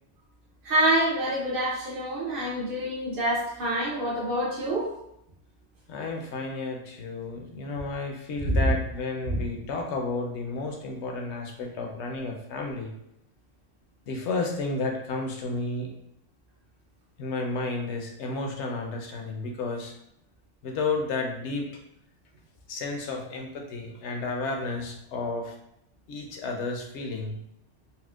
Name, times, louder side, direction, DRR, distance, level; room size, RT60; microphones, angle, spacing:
voice 1, 0.6-4.9 8.4-8.6 9.3-9.4, right 1 dB, 55° right, -6 dB, 0.9 m, -26 dB
voice 2, 5.9-12.9 14.1-15.9 17.2-19.9 20.6-21.7 22.7-25.5 26.1-27.4, left 3 dB, 70° left, 2 dB, 0.9 m, -32 dB
4.2 x 2.1 x 2.4 m, 0.79 s
omnidirectional pair, 1.3 m